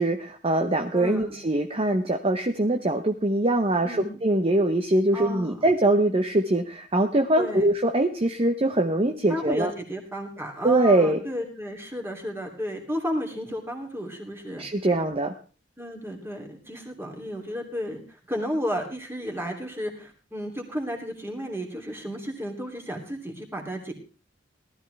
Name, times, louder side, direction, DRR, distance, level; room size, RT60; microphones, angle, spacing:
voice 1, 0.0-9.7 10.6-11.2 14.6-15.3, right 1 dB, 30° right, 5 dB, 0.9 m, -23 dB
voice 2, 0.9-1.3 3.8-4.2 5.1-5.7 7.4-7.7 9.3-14.7 15.8-23.9, equal, 15° right, 1 dB, 2.9 m, -33 dB
18.5 x 13.0 x 3.4 m, 0.36 s
head